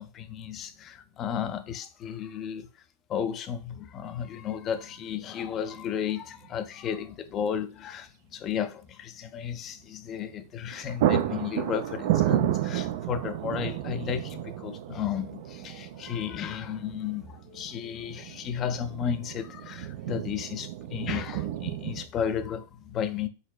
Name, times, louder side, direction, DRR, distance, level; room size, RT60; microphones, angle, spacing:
voice 1, 0.0-2.7 3.1-23.3, left 8 dB, 30° left, 0.5 m, -33 dB
sound 1, 4.1-4.2 5.7-6.2 6.4-6.5 10.2-10.4 10.7-22.1, right 12 dB, 50° right, 0.4 m, -31 dB
4.2 x 4.0 x 2.2 m
figure-of-eight pair, 90°, 0 cm